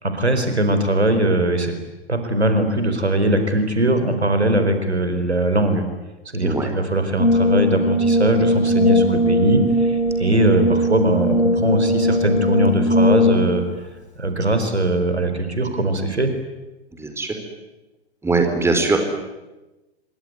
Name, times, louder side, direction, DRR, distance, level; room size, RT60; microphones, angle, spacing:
voice 1, 0.0-1.7 2.1-5.8 6.3-13.6 14.2-16.3, right 1 dB, 90° right, 8 dB, 4.5 m, -20 dB
voice 2, 6.4-6.7 16.9-17.3 18.2-19.0, right 3 dB, 10° right, 5 dB, 4.5 m, -21 dB
Brass instrument, 7.2-13.6, left 1 dB, 85° left, 4.1 m, -19 dB
26.0 x 23.5 x 9.5 m, 1.1 s
figure-of-eight pair, 110°, 32 cm